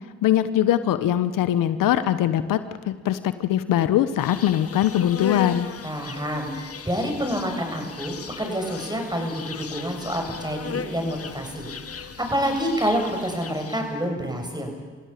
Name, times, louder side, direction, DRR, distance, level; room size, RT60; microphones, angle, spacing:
voice 1, 0.2-2.6 2.9-5.7, left 11 dB, 80° left, 13 dB, 1.1 m, -21 dB
Insect, 4.2-14.0, left 6 dB, 45° left, 1.6 m, -37 dB
voice 2, 5.8-14.7, equal, 15° right, 4 dB, 7.7 m, -28 dB
27.5 x 16.0 x 8.5 m, 1.5 s
supercardioid pair, 50°, 32 cm